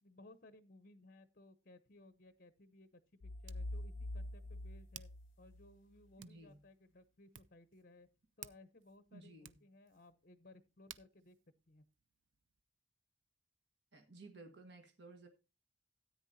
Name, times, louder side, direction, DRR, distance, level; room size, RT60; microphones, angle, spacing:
voice 1, 0.0-5.1 5.4-8.1 8.4-11.4 11.7-11.8, left 2 dB, 50° left, 0.8 m, -61 dB
Hands, 1.9-12.6, right 11 dB, 90° right, 0.5 m, -61 dB
sound 1, 3.2-6.1, left 1 dB, 85° left, 0.5 m, -45 dB
voice 2, 6.2-6.6 9.1-9.6 13.9-15.3, right 2 dB, 65° right, 1.5 m, -56 dB
13.5 x 9.2 x 2.7 m
head